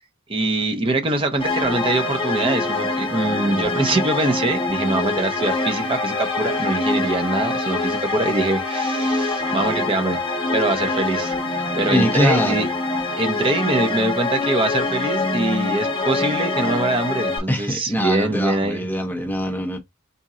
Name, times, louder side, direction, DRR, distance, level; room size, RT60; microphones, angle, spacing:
voice 1, 0.3-10.2 10.5-11.4 11.8-12.7 13.2-18.8, right 2 dB, 25° right, 0.8 m, -23 dB
sound 1, 1.4-17.4, left 2 dB, 25° left, 1.3 m, -24 dB
voice 2, 11.9-12.7 17.5-19.8, equal, 10° left, 0.6 m, -23 dB
4.1 x 2.6 x 3.6 m
head